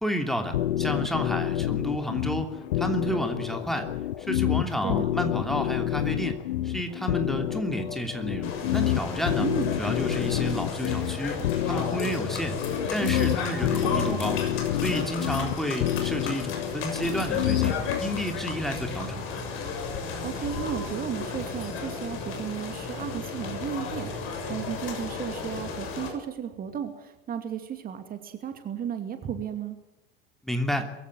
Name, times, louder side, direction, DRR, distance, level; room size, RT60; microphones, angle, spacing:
voice 1, 0.0-3.9 4.2-6.4 6.6-9.5 9.8-12.6 12.9-14.4 14.8-19.3 30.4-30.9, equal, ahead, 4 dB, 3.0 m, -31 dB
sound 1, 0.5-18.0, left 12 dB, 60° left, 1.0 m, -28 dB
voice 2, 4.8-5.1 9.4-9.7 20.2-29.8, right 9 dB, 30° right, 8 dB, 2.5 m, -34 dB
sound 2, 8.4-26.1, left 5 dB, 45° left, 6.7 m, -33 dB
22.5 x 16.0 x 9.4 m, 0.95 s
figure-of-eight pair, 80°, 29 cm